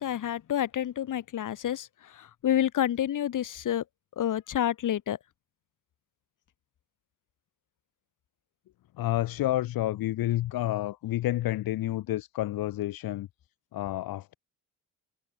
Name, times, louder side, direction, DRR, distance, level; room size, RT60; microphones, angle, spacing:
voice 1, 0.0-3.8 4.2-5.2, left 11 dB, 60° left, 7.2 m, -29 dB
voice 2, 9.0-13.3 13.7-14.3, left 15 dB, 90° left, 3.2 m, -29 dB
cardioid pair, 140°, 34 cm